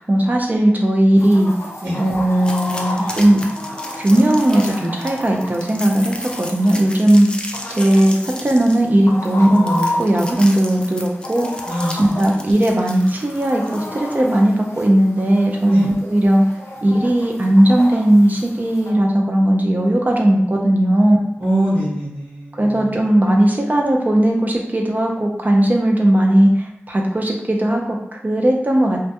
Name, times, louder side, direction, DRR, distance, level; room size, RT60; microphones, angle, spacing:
voice 1, 0.0-1.5 2.0-3.4 3.9-7.3 7.8-11.5 12.0-16.4 16.8-21.2 22.5-29.0, right 1 dB, 40° right, 0 dB, 0.5 m, -17 dB
Chicken rooster, 1.2-18.9, left 1 dB, 85° left, 0.6 m, -32 dB
sound 1, 2.4-14.1, left 1 dB, 20° left, 0.3 m, -34 dB
voice 2, 11.7-12.3 15.6-15.9 21.4-22.9, right 1 dB, 55° right, -11 dB, 0.8 m, -23 dB
2.2 x 2.2 x 2.8 m, 0.83 s
wide cardioid pair, 75°, 5 cm